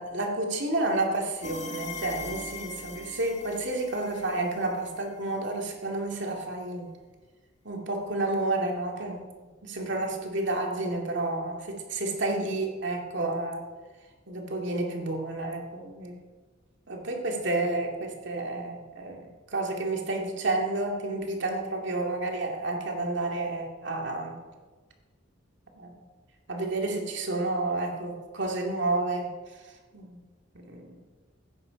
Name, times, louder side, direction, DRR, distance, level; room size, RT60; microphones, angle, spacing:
voice 1, 0.0-6.9 7.6-9.3 9.6-13.7 14.3-16.2 16.9-24.4 25.8-26.0 26.5-30.2 30.5-31.0, right 2 dB, 65° right, 1 dB, 2.3 m, -30 dB
sound 1, 1.4-5.2, left 3 dB, 40° left, 1.2 m, -41 dB
15.0 x 9.8 x 5.2 m, 1.4 s
head